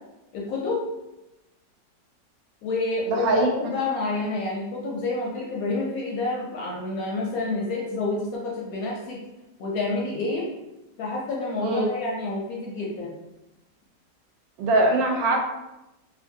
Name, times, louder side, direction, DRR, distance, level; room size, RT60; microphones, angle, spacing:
voice 1, 0.3-0.8 2.6-9.2 9.6-10.4 11.0-13.2, left 3 dB, 70° left, -4 dB, 0.9 m, -28 dB
voice 2, 3.1-3.5 11.6-11.9 14.6-15.4, right 2 dB, 90° right, 2 dB, 1.3 m, -21 dB
2.9 x 2.6 x 2.6 m, 0.95 s
omnidirectional pair, 1.9 m